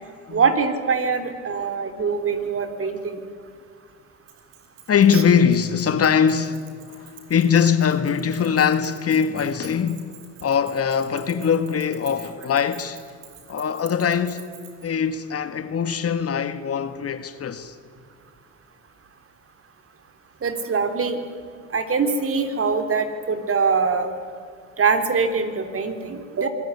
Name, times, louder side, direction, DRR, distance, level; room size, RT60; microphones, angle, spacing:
voice 1, 0.3-3.2 5.1-5.2 20.4-21.2 21.7-24.1 24.8-26.5, right 5 dB, 35° right, 3.7 m, -23 dB
Keys jangling, 4.3-14.9, right 11 dB, 80° right, 5.7 m, -47 dB
voice 2, 4.9-10.1 10.4-13.0 13.5-14.4 14.8-17.8, left 7 dB, 40° left, 1.8 m, -22 dB
26.5 x 20.5 x 9.8 m
hypercardioid pair, 75°, 36 cm